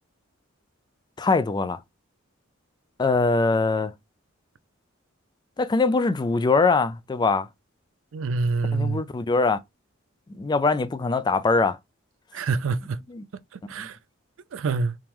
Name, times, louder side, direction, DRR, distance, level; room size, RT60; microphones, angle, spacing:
voice 1, 1.2-1.8 3.0-3.9 5.6-7.5 8.7-9.6 10.4-11.8 13.1-13.2 13.8-13.9, left 3 dB, 20° left, 0.3 m, -22 dB
voice 2, 8.1-9.0 12.3-13.0 13.5-14.0 14.5-15.0, right 4 dB, 65° right, 0.4 m, -26 dB
3.6 x 2.9 x 3.0 m
head